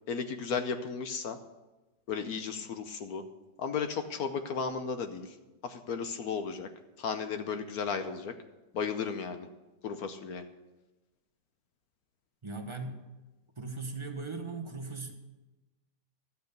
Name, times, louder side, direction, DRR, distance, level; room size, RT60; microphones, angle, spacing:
voice 1, 0.1-1.4 2.1-3.2 3.6-5.4 5.6-6.7 7.0-8.3 8.7-9.5 9.8-10.4, left 6 dB, 65° left, 8 dB, 1.1 m, -34 dB
voice 2, 12.4-13.0 13.6-15.1, right 3 dB, 25° right, 4 dB, 0.6 m, -38 dB
12.5 x 7.0 x 6.7 m, 1.1 s
omnidirectional pair, 2.0 m